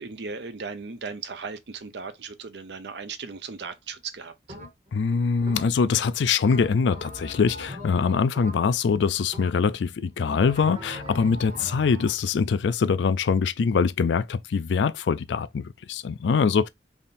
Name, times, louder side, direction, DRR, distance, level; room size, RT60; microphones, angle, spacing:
voice 1, 0.0-4.3, right 5 dB, 75° right, 0.6 m, -37 dB
sound 1, 4.5-5.0 5.5-6.0 6.4-8.9 9.3-9.9 10.3-12.2, equal, 40° right, 1.4 m, -40 dB
voice 2, 4.9-16.7, left 5 dB, 85° left, 0.4 m, -23 dB
3.6 x 2.6 x 4.1 m
head